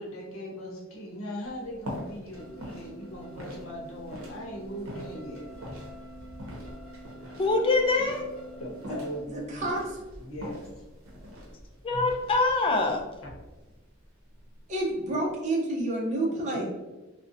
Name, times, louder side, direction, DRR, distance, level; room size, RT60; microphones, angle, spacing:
voice 1, 0.0-5.5 8.6-9.7 10.2-10.8 13.2-13.3 16.2-16.7, equal, 75° left, -1 dB, 0.7 m, -39 dB
sound 1, 1.4-15.5, equal, 75° right, 0.7 m, -44 dB
sound 2, 2.4-9.2, right 2 dB, 5° left, 0.9 m, -47 dB
voice 2, 7.4-8.3 11.8-13.0, left 3 dB, 25° left, 2 dB, 0.3 m, -24 dB
voice 3, 9.3-10.0 14.7-16.7, right 1 dB, 35° right, -3 dB, 0.5 m, -29 dB
2.6 x 2.0 x 2.5 m, 1.1 s
head